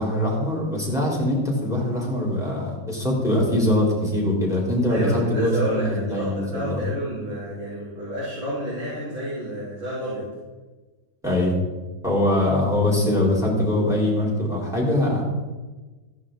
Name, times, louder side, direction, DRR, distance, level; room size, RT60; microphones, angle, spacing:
voice 1, 0.0-6.8 11.2-11.5 12.0-15.2, left 1 dB, ahead, -3 dB, 3.3 m, -22 dB
voice 2, 4.9-10.3, right 1 dB, 70° right, -9 dB, 4.5 m, -30 dB
15.0 x 10.0 x 3.8 m, 1.3 s
omnidirectional pair, 2.2 m